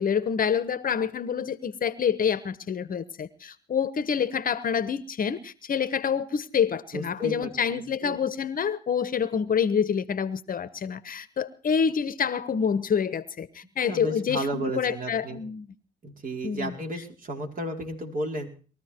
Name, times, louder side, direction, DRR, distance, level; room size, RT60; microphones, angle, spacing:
voice 1, 0.0-15.7 16.4-16.7, left 7 dB, 45° left, 1.1 m, -27 dB
voice 2, 6.9-8.2 13.8-15.4 16.0-18.5, right 1 dB, 40° right, 4.9 m, -33 dB
21.0 x 14.0 x 4.5 m
hypercardioid pair, 55°, 21 cm